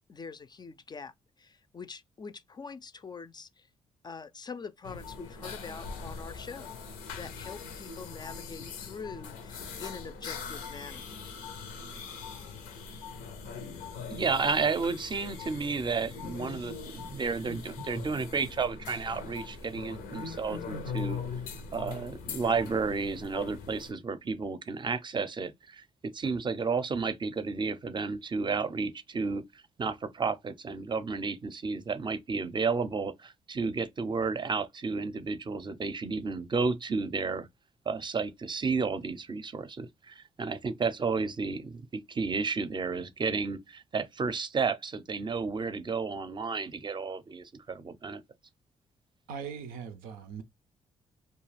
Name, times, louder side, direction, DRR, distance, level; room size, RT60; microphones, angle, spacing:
voice 1, 0.1-3.7 4.0-6.8 7.1-11.0, left 5 dB, 30° left, 0.3 m, -44 dB
sound 1, 4.8-23.9, left 5 dB, 90° left, 0.5 m, -41 dB
voice 2, 14.1-21.2 21.7-29.4 29.8-37.5 37.9-48.2, right 4 dB, 35° right, 0.5 m, -32 dB
voice 3, 49.3-50.4, right 6 dB, 90° right, 0.5 m, -40 dB
2.4 x 2.2 x 3.1 m
supercardioid pair, 55°, 14 cm